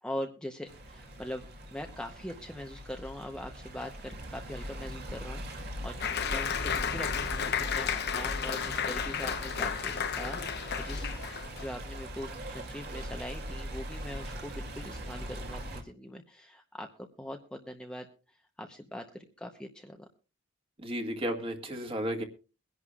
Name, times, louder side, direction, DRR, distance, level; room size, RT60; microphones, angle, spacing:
voice 1, 0.0-1.5 1.7-6.0 6.3-11.1 11.6-19.0 19.4-20.1, left 1 dB, 5° left, 3 dB, 0.8 m, -42 dB
Stream, 0.7-15.8, equal, 50° right, 2.6 m, -40 dB
Applause, 6.0-11.7, left 7 dB, 50° left, 0.8 m, -33 dB
voice 2, 20.8-22.2, equal, 25° right, 4 dB, 2.0 m, -33 dB
23.0 x 11.0 x 2.4 m, 0.33 s
head